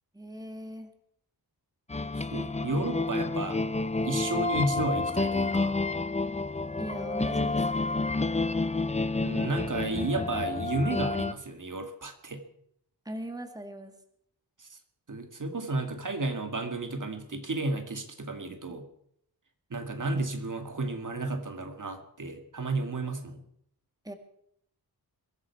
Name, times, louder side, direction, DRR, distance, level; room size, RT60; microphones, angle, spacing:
voice 1, 0.1-0.9 6.8-7.7 13.1-13.9 24.0-24.1, right 1 dB, 10° right, 6 dB, 2.0 m, -39 dB
sound 1, 1.9-11.3, left 3 dB, 15° left, 0.7 m, -29 dB
voice 2, 2.2-3.6 4.0-5.8 9.2-12.4 14.6-14.8 15.1-18.8 19.7-23.4, right 2 dB, 50° right, 6 dB, 2.1 m, -32 dB
22.5 x 13.0 x 4.7 m, 0.69 s
wide cardioid pair, 90°, 39 cm